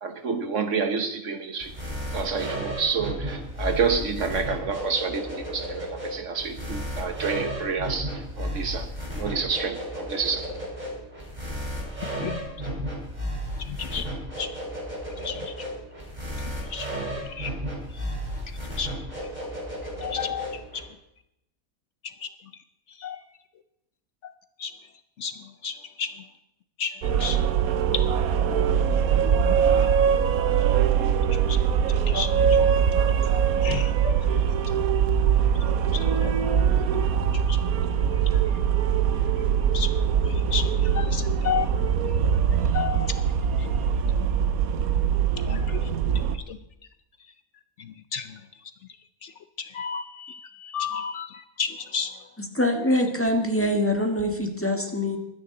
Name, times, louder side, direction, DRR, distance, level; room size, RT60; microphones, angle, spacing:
voice 1, 0.0-1.7 2.1-8.9 9.1-10.5, right 5 dB, 60° right, 8 dB, 1.5 m, -28 dB
sound 1, 1.6-20.8, equal, 30° right, 4.2 m, -33 dB
voice 2, 13.6-14.0 14.4-14.5 15.2-15.4 16.4-16.9 17.4-17.5 18.8-18.9 20.0-20.5 23.0-23.2 24.6-24.7 25.2-25.3 25.6-26.1 26.8-26.9 27.2-27.4 31.5-31.8 32.1-32.3 33.6-34.2 35.9-36.3 36.9-37.0 37.5-37.6 39.7-39.9 40.5-41.7 42.7-43.1 45.5-45.8 46.5-46.6 48.1-48.3 49.2-49.3 49.6-52.1, left 7 dB, 65° left, 11 dB, 0.9 m, -31 dB
sound 2, 27.0-46.4, right 8 dB, 90° right, 1.3 m, -22 dB
voice 3, 52.4-55.2, left 1 dB, 10° left, 3 dB, 1.5 m, -24 dB
22.0 x 9.9 x 3.9 m, 0.82 s
omnidirectional pair, 1.5 m